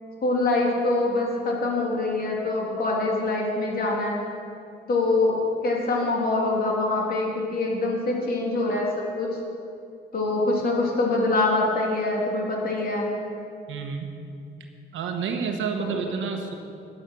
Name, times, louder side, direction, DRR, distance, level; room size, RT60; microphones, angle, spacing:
voice 1, 0.2-4.2 4.9-8.9 9.2-9.3 10.1-13.1 15.8-16.0, left 2 dB, 50° left, -2 dB, 3.2 m, -24 dB
voice 2, 13.7-14.1 14.9-16.5, right 6 dB, 75° right, 4 dB, 1.2 m, -29 dB
10.0 x 9.5 x 6.3 m, 2.5 s
cardioid pair, 90°, 20 cm